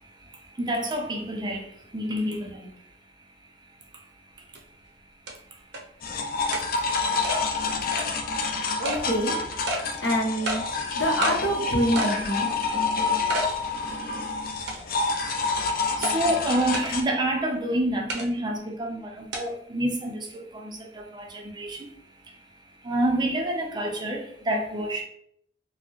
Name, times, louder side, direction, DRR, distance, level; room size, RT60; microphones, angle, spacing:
voice 1, 0.6-1.6 1.9-2.5 16.1-20.4 21.6-21.8 22.9-24.2 24.5-25.0, right 1 dB, 25° right, 2 dB, 0.4 m, -27 dB
sound 1, 4.6-4.7 5.3-5.4 5.7-5.8 6.5-6.7 7.2-7.4 7.9-8.1 8.8-9.0 9.7-9.8 10.5-10.6 11.2-11.4 12.0-12.2 12.6-12.7 13.3-13.5 13.9-14.0 14.7-15.1 16.0-16.1 16.7-16.9 18.1-18.3 19.3-19.4, equal, 65° right, 0.7 m, -29 dB
sound 2, 6.0-17.0, left 4 dB, 50° left, 0.5 m, -28 dB
voice 2, 8.8-9.4 10.0-10.6 10.9-12.5, equal, 70° left, -2 dB, 1.0 m, -25 dB
4.1 x 2.1 x 3.0 m, 0.69 s
head